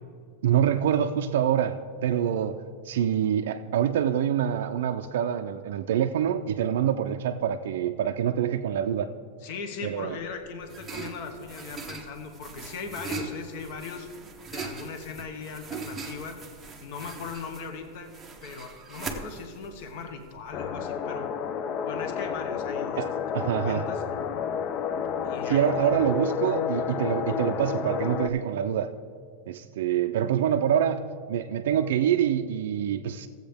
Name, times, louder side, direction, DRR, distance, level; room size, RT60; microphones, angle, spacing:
voice 1, 0.4-9.1 9.8-10.1 23.0-23.9 25.4-28.9 29.5-33.3, right 9 dB, 70° right, 5 dB, 0.4 m, -26 dB
voice 2, 9.4-14.1 14.5-16.4 16.8-18.1 18.4-21.3 21.8-24.4 25.2-26.0, left 5 dB, 40° left, 6 dB, 1.0 m, -39 dB
sound 1, 10.1-20.7, right 4 dB, 10° right, 0.7 m, -40 dB
sound 2, 20.5-28.3, left 7 dB, 25° left, 0.3 m, -30 dB
15.5 x 7.8 x 3.5 m, 2.2 s
supercardioid pair, 175°, 0 cm